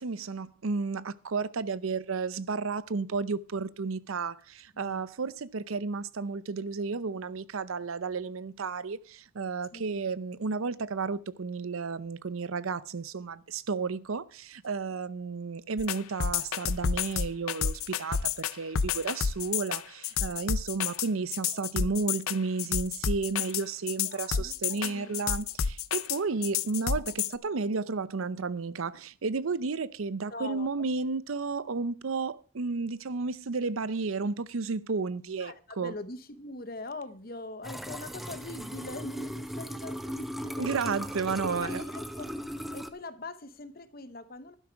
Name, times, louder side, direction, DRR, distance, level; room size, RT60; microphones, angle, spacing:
voice 1, 0.0-35.9 40.6-41.8, right 4 dB, 80° right, 0.6 m, -32 dB
voice 2, 4.7-5.1 9.7-10.0 17.9-18.1 21.4-21.7 24.0-25.2 30.3-30.7 35.4-40.7 41.5-42.3 42.6-44.6, left 2 dB, 45° left, 1.0 m, -42 dB
sound 1, 15.8-27.3, left 7 dB, 90° left, 0.6 m, -30 dB
sound 2, 37.6-42.9, equal, ahead, 0.5 m, -37 dB
12.0 x 10.0 x 4.6 m
head